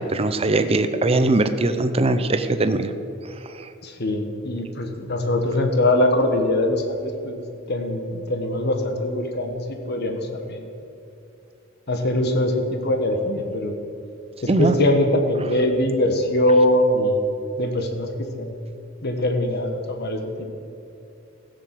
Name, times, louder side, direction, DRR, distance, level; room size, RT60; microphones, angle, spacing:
voice 1, 0.0-2.9 3.2-3.7 14.5-14.7, right 2 dB, 30° right, 9 dB, 0.6 m, -21 dB
voice 2, 3.8-10.8 11.9-13.7 14.4-17.3 17.6-18.6 19.0-20.4, left 1 dB, 55° left, 4 dB, 1.5 m, -22 dB
15.0 x 7.1 x 7.6 m, 2.6 s
head